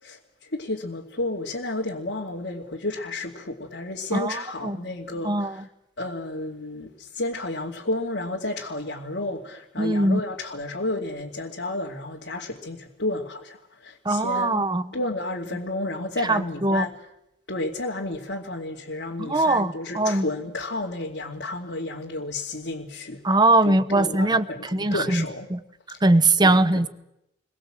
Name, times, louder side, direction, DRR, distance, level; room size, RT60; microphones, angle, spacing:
voice 1, 0.0-5.6 6.0-14.6 14.9-16.9 17.5-23.2 23.6-25.5 26.4-26.9, left 2 dB, 75° left, 2.6 m, -31 dB
voice 2, 4.1-4.8 5.2-5.6 9.8-10.2 14.0-14.9 16.2-16.9 19.2-20.3 23.2-25.6 26.0-26.9, right 2 dB, 25° right, 1.0 m, -21 dB
29.0 x 22.5 x 7.6 m
head